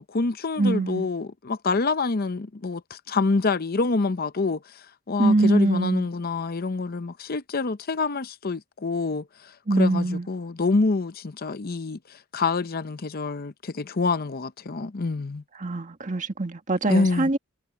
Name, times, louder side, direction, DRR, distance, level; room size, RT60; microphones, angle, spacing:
voice 1, 0.0-15.4 16.9-17.3, left 3 dB, 45° left, 0.7 m, -27 dB
voice 2, 0.6-1.1 5.2-6.1 9.7-10.3 15.6-17.4, right 2 dB, 40° right, 1.6 m, -23 dB
head